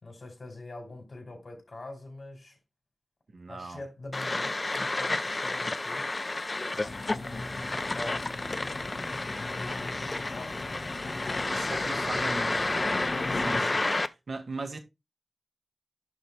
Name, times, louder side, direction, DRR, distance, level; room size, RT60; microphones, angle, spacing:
voice 1, 0.0-2.6 3.5-6.1 6.7-8.2 9.3-10.8 12.4-12.8 13.6-13.8, left 2 dB, 60° left, 4.5 m, -44 dB
voice 2, 3.3-3.8 11.5-12.5 13.3-13.8 14.3-14.8, right 3 dB, 75° right, 1.8 m, -38 dB
sound 1, 4.1-14.1, left 2 dB, 40° left, 0.6 m, -31 dB
sound 2, 6.8-13.6, left 2 dB, 90° left, 1.5 m, -38 dB
11.0 x 4.0 x 3.4 m
wide cardioid pair, 85°, 0 cm